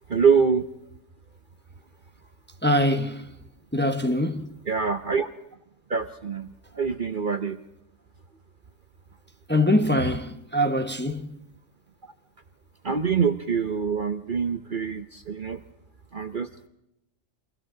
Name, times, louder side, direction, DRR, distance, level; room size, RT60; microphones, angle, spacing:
voice 1, 0.1-0.6 4.7-5.3 5.9-6.5 6.7-7.6 12.8-15.6 16.1-16.7, right 6 dB, 45° right, 1.0 m, -25 dB
voice 2, 2.6-3.3 3.7-4.5 9.5-11.3, left 1 dB, 10° left, 1.1 m, -23 dB
29.0 x 24.0 x 3.9 m
omnidirectional pair, 1.4 m